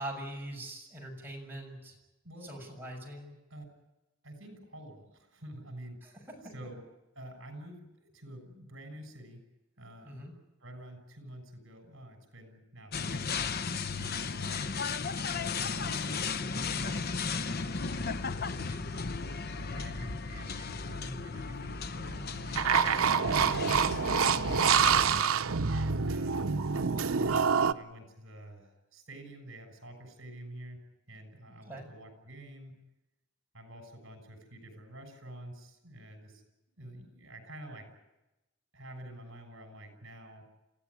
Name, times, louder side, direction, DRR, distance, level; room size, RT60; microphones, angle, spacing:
voice 1, 0.0-2.0 2.4-3.3 6.0-6.5 10.0-10.3 31.5-31.9, right 1 dB, 10° right, -1 dB, 6.9 m, -42 dB
voice 2, 4.2-6.2 6.5-6.9 7.1-9.4 9.8-10.3 10.6-13.3 13.9-14.7 15.0-18.9 19.5-22.6 23.4-26.5 27.2-30.8 31.1-32.8 33.5-36.4 36.8-37.9 38.7-40.5, right 1 dB, 65° right, 5 dB, 6.8 m, -48 dB
sound 1, 12.9-25.2, left 4 dB, 50° left, 0.8 m, -35 dB
sound 2, 22.6-27.7, right 6 dB, 90° right, 0.8 m, -26 dB
28.0 x 15.5 x 9.9 m, 0.99 s
head